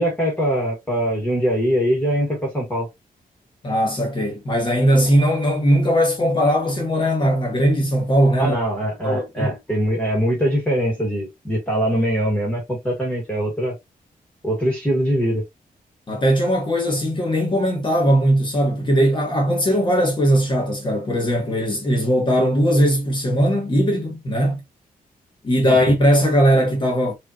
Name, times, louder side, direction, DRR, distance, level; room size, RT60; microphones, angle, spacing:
voice 1, 0.0-2.9 8.4-13.7 14.4-15.4 25.6-25.8, equal, 10° left, 1.5 m, -22 dB
voice 2, 3.6-8.5 9.0-9.5 16.1-24.6 25.4-27.1, equal, 30° left, 1.3 m, -19 dB
5.0 x 2.5 x 2.8 m
wide cardioid pair, 175°, 15 cm